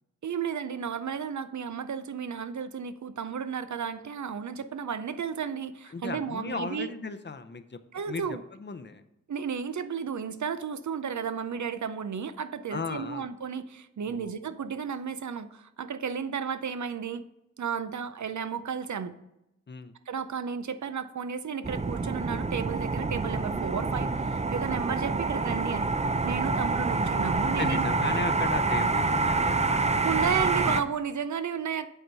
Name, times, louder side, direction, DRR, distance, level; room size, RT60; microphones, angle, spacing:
voice 1, 0.2-6.9 7.9-8.4 9.3-17.2 17.6-19.2 20.1-25.9 26.2-27.8 30.0-31.9, right 7 dB, 75° right, 12 dB, 0.5 m, -33 dB
voice 2, 5.8-7.8 8.1-9.0 12.7-13.3 14.1-14.3 19.7-19.9 27.4-30.0 30.7-30.8, left 4 dB, 40° left, 9 dB, 0.6 m, -36 dB
sound 1, 21.6-30.8, right 3 dB, 25° right, 0.4 m, -27 dB
8.0 x 4.4 x 5.4 m, 0.86 s
wide cardioid pair, 60°, 29 cm